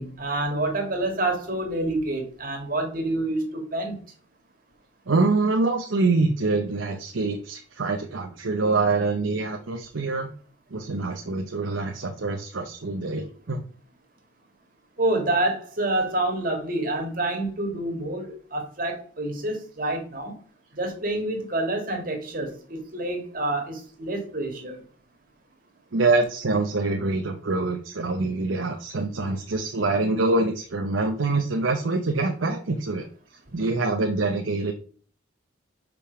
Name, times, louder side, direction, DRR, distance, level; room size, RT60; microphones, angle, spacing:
voice 1, 0.0-4.0 15.0-20.3 20.8-24.8, right 2 dB, 45° right, 2.0 m, -27 dB
voice 2, 5.1-10.3 10.7-13.6 25.9-33.1 33.5-34.7, right 3 dB, 85° right, 0.8 m, -25 dB
5.2 x 5.2 x 5.8 m
head